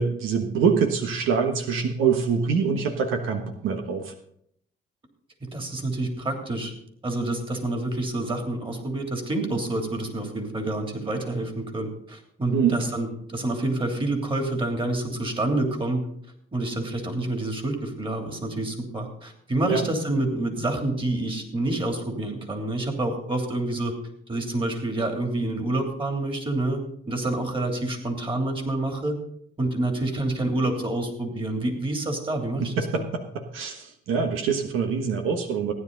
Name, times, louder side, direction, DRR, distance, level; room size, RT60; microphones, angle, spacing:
voice 1, 0.0-4.1 12.5-12.8 19.7-19.8 32.6-33.0 33.5-35.7, right 6 dB, 90° right, 5 dB, 1.4 m, -24 dB
voice 2, 5.4-6.7 7.0-16.0 16.5-23.9 24.3-29.2 29.6-33.1, right 2 dB, 25° right, 4 dB, 3.2 m, -28 dB
16.0 x 9.9 x 4.0 m, 0.67 s
cardioid pair, 90°, 20 cm